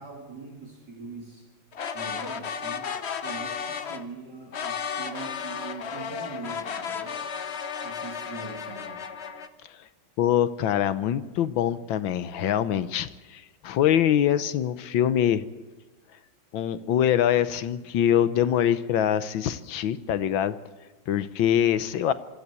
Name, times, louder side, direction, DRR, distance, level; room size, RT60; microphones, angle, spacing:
voice 1, 0.0-1.5 1.9-2.9 3.2-7.2 7.8-9.0, right 4 dB, 55° right, -1 dB, 3.3 m, -42 dB
sound 1, 1.7-4.0 4.5-9.5, left 7 dB, 45° left, 0.9 m, -34 dB
voice 2, 10.2-15.4 16.5-20.6 21.1-22.1, left 10 dB, 75° left, 13 dB, 1.5 m, -24 dB
24.0 x 13.5 x 8.3 m, 1.3 s
omnidirectional pair, 2.2 m